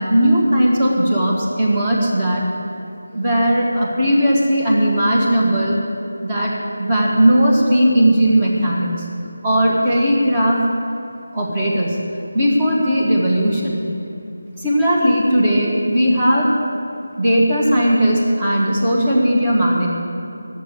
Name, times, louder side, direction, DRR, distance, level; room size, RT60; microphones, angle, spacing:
voice 1, 0.0-2.5 3.1-5.8 6.2-9.1 9.4-10.6 11.3-12.0 12.3-13.8 14.5-16.6 17.1-19.9, equal, 25° right, -4 dB, 1.8 m, -17 dB
11.5 x 7.4 x 9.3 m, 2.6 s
figure-of-eight pair, 165°, 0 cm